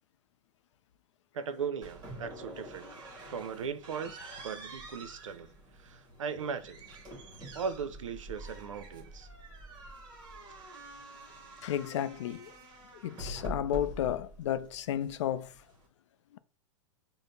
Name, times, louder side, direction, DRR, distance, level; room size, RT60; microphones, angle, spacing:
voice 1, 1.3-3.0 3.3-4.2 4.4-5.5 5.8-6.8 7.5-9.3, right 6 dB, 80° right, 0.5 m, -38 dB
sound 1, 1.8-15.9, right 1 dB, 25° right, 1.0 m, -46 dB
voice 2, 11.6-12.5 13.0-15.5 16.3-16.4, left 11 dB, 65° left, 0.4 m, -32 dB
5.0 x 2.0 x 2.6 m
hypercardioid pair, 100°, 16 cm